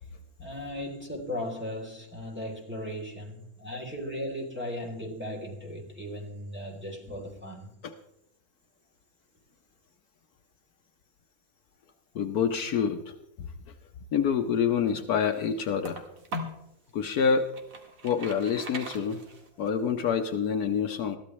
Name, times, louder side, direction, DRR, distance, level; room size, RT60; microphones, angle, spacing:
voice 1, 0.4-7.7, left 1 dB, 5° right, -2 dB, 2.9 m, -37 dB
voice 2, 12.1-13.0 14.1-16.0 16.9-17.6 18.0-19.2 19.6-21.2, left 7 dB, 70° left, 7 dB, 1.3 m, -27 dB
sound 1, 14.6-16.7 17.2-19.7, equal, 55° right, 2.1 m, -40 dB
21.5 x 14.5 x 3.1 m, 0.82 s
omnidirectional pair, 1.7 m